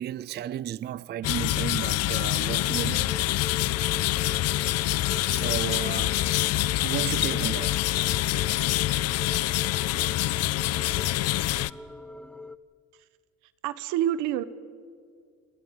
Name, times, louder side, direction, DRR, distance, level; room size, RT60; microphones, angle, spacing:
voice 1, 0.0-3.1 5.3-7.8, right 11 dB, 35° right, 0.5 m, -34 dB
sound 1, 1.2-11.7, left 16 dB, 55° left, 0.5 m, -26 dB
sound 2, 2.5-12.6, left 2 dB, 5° left, 0.7 m, -42 dB
voice 2, 13.6-14.4, right 12 dB, 90° right, 1.2 m, -27 dB
29.0 x 23.0 x 5.2 m
cardioid pair, 115°, 29 cm